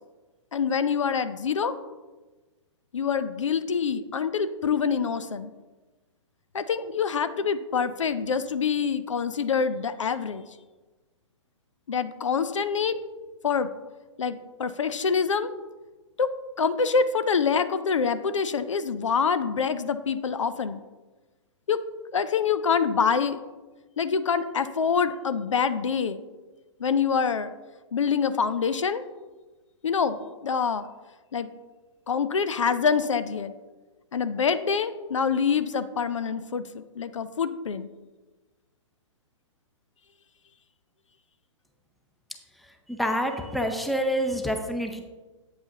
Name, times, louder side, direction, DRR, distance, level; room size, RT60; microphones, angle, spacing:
voice 1, 0.5-1.8 2.9-5.5 6.5-10.5 11.9-13.0 13.4-13.7 14.2-15.5 16.2-16.3 16.6-20.8 21.7-21.8 22.1-23.4 24.0-26.2 26.8-27.5 27.9-29.0 29.8-30.9 31.3-31.5 32.1-33.5 34.1-37.9, left 6 dB, 75° left, 12 dB, 0.5 m, -26 dB
voice 2, 42.9-45.0, equal, ahead, 5 dB, 0.6 m, -27 dB
8.5 x 7.8 x 2.9 m, 1.2 s
figure-of-eight pair, 115°, 16 cm